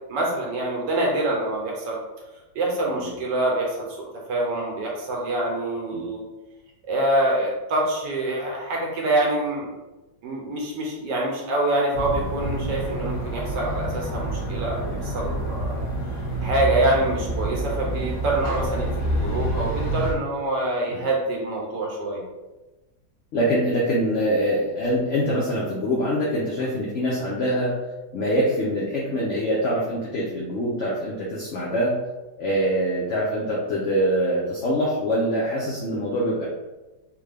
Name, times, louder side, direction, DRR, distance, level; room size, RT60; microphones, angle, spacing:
voice 1, 0.1-2.0 2.5-6.2 6.9-9.7 10.2-15.8 16.4-22.2, right 1 dB, 75° right, -1 dB, 1.3 m, -25 dB
sound 1, 11.9-20.1, right 1 dB, 90° left, 1.5 m, -28 dB
voice 2, 23.3-27.7 28.1-31.9 32.4-36.5, equal, 65° left, -5 dB, 0.7 m, -24 dB
3.6 x 2.2 x 3.3 m, 1.1 s
omnidirectional pair, 1.9 m